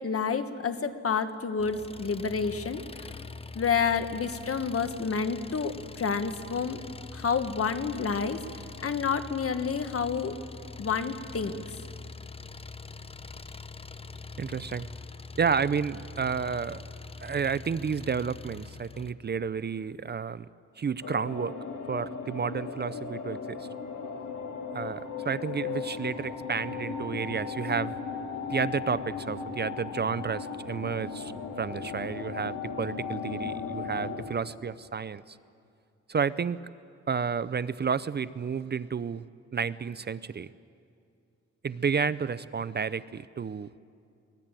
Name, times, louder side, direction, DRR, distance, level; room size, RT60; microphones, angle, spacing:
voice 1, 0.0-3.1 3.5-6.8 7.1-10.4 10.8-11.8, left 5 dB, 50° left, 9 dB, 1.5 m, -29 dB
Engine, 1.6-19.1, left 4 dB, 20° left, 0.7 m, -44 dB
voice 2, 14.4-14.9 15.4-16.8 17.2-20.5 20.8-21.6 21.9-23.7 24.7-27.9 28.5-31.3 31.6-35.4 36.1-36.6 37.1-39.2 39.5-40.5 41.6-43.8, right 6 dB, 35° right, 16 dB, 0.5 m, -31 dB
sound 1, 21.0-34.3, left 5 dB, 90° left, 2.4 m, -36 dB
24.0 x 20.0 x 9.0 m, 2.4 s
cardioid pair, 85°, 29 cm